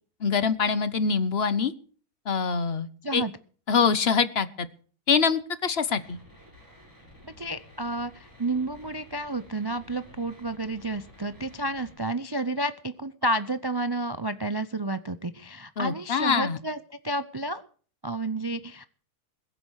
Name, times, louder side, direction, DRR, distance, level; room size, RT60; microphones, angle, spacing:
voice 1, 0.2-1.7 2.3-3.2 3.7-4.7 5.1-6.2 15.8-16.6, left 6 dB, 45° left, 15 dB, 1.1 m, -24 dB
sound 1, 5.9-11.9, left 1 dB, 10° right, 8.1 m, -52 dB
voice 2, 7.2-16.8 17.0-17.6 18.0-18.8, right 2 dB, 35° right, 12 dB, 0.3 m, -31 dB
21.5 x 8.8 x 6.4 m, 0.43 s
omnidirectional pair, 1.7 m